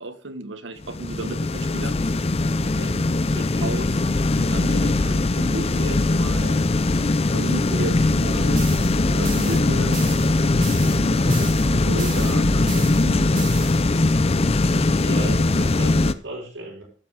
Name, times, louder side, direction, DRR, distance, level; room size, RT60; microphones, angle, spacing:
voice 1, 0.0-2.0 3.6-3.9 4.3-6.6 7.2-8.6 9.1-10.1 11.9-13.5, right 2 dB, 90° right, 10 dB, 1.3 m, -33 dB
sound 1, 0.8-16.1, left 2 dB, 35° left, 0.5 m, -21 dB
voice 2, 2.4-3.7 14.8-16.8, right 1 dB, 70° right, -6 dB, 6.9 m, -36 dB
sound 2, 8.2-14.3, right 3 dB, 45° right, 0.8 m, -32 dB
12.0 x 7.6 x 4.9 m, 0.43 s
head